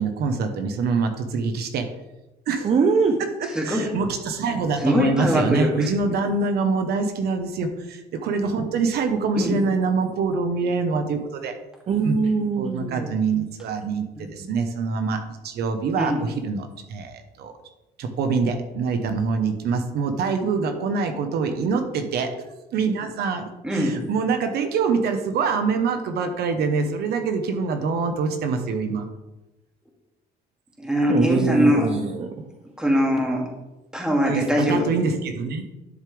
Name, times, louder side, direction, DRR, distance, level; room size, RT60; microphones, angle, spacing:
voice 1, 0.0-1.9 2.5-2.7 3.2-11.5 12.0-12.1 12.6-17.5 18.0-22.3 22.7-29.1 33.3-33.4 34.3-35.6, right 4 dB, 70° right, 7 dB, 1.1 m, -25 dB
voice 2, 2.6-3.2 11.9-13.1 31.1-32.3, right 5 dB, 40° right, 4 dB, 0.9 m, -22 dB
voice 3, 3.5-3.9 4.8-5.9 9.4-9.6 14.2-14.5 16.0-16.2 23.6-24.0 30.8-31.9 32.8-33.4 33.9-34.9, equal, 5° right, -1 dB, 2.5 m, -22 dB
11.0 x 6.9 x 3.4 m, 0.99 s
cardioid pair, 110°, 17 cm